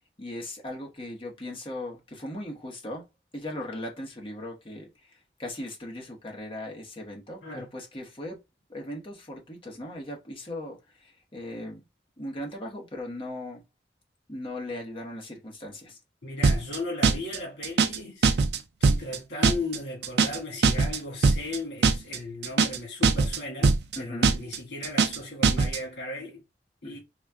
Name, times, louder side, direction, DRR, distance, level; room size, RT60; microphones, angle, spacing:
voice 1, 0.2-3.0 3.3-4.9 5.4-8.4 8.7-11.8 12.2-13.6 14.3-16.0 24.0-24.3 26.8-27.0, left 1 dB, 30° left, 1.0 m, -38 dB
voice 2, 16.2-18.4 18.8-26.4 26.8-27.0, left 2 dB, 80° left, 1.8 m, -36 dB
sound 1, 16.4-16.8 17.0-17.4 17.6-18.0 18.2-18.6 18.8-19.2 19.4-19.8 20.0-20.4 20.6-21.0 21.2-21.6 21.8-22.2 22.4-22.8 23.0-23.4 23.6-24.0 24.2-24.6 24.8-25.2 25.4-25.8, right 4 dB, 70° right, 0.5 m, -21 dB
4.1 x 2.2 x 3.5 m
head